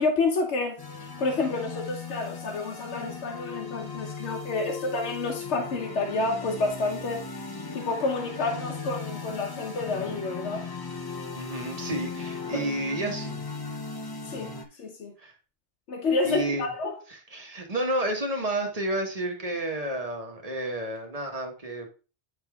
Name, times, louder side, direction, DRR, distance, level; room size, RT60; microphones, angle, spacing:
voice 1, 0.0-7.2 7.7-10.7 12.5-12.7 14.3-14.5 14.8-15.1 15.9-16.9, left 3 dB, 80° left, 1.2 m, -29 dB
sound 1, 0.8-14.6, left 4 dB, 25° left, 0.6 m, -37 dB
voice 2, 11.4-13.4 15.2-15.3 16.2-16.7 17.1-21.9, right 1 dB, 35° right, 1.4 m, -31 dB
8.8 x 3.6 x 3.5 m
omnidirectional pair, 1.1 m